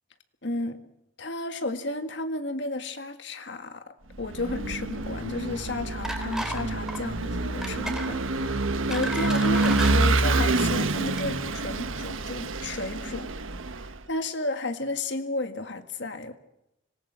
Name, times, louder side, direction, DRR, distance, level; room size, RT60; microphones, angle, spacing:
voice 1, 0.4-0.8 1.2-13.3 14.1-16.3, left 2 dB, 60° left, 7 dB, 1.8 m, -33 dB
Vehicle / Engine, 4.2-14.0, right 2 dB, 90° right, 1.4 m, -27 dB
sound 1, 6.0-6.6 6.9-7.1 7.6-8.1 8.6-9.9 10.7-10.9 11.2-11.3, right 1 dB, 5° right, 3.2 m, -34 dB
26.0 x 19.5 x 6.4 m, 0.84 s
head